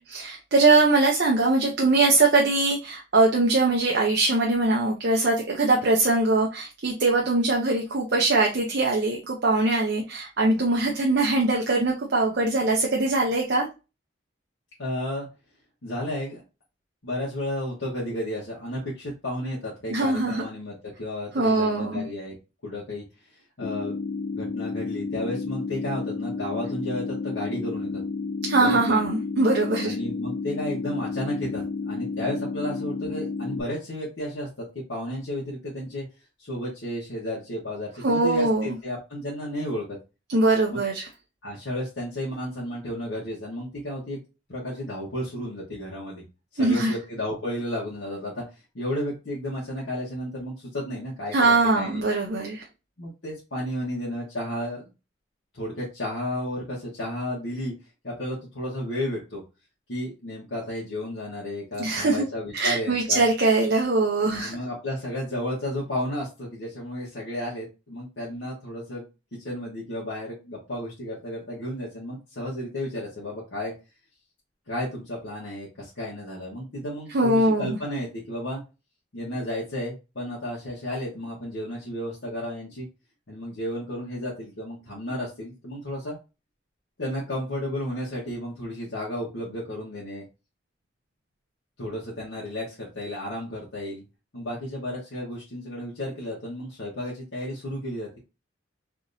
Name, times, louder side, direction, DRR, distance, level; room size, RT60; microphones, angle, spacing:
voice 1, 0.0-13.7 19.9-20.5 21.3-22.0 28.5-30.0 38.0-38.7 40.3-41.1 46.6-46.9 51.3-52.6 61.8-62.3 62.5-64.5 77.1-77.8, right 2 dB, 55° right, -1 dB, 0.6 m, -22 dB
voice 2, 14.8-15.3 15.8-16.4 17.0-22.4 22.6-23.0 23.6-23.9 24.3-28.0 28.5-29.1 29.8-36.0 36.4-40.0 40.7-40.8 41.4-44.2 44.5-46.2 46.5-48.4 48.7-52.0 53.0-54.8 55.5-57.7 58.0-59.4 59.9-63.3 64.3-69.0 69.3-73.7 74.7-78.6 79.1-82.9 83.3-86.2 87.0-90.2 91.8-94.0 94.3-98.2, left 1 dB, 75° left, -6 dB, 1.2 m, -33 dB
sound 1, 23.6-33.6, left 4 dB, 55° left, 0.3 m, -31 dB
3.5 x 2.8 x 2.6 m, 0.28 s
head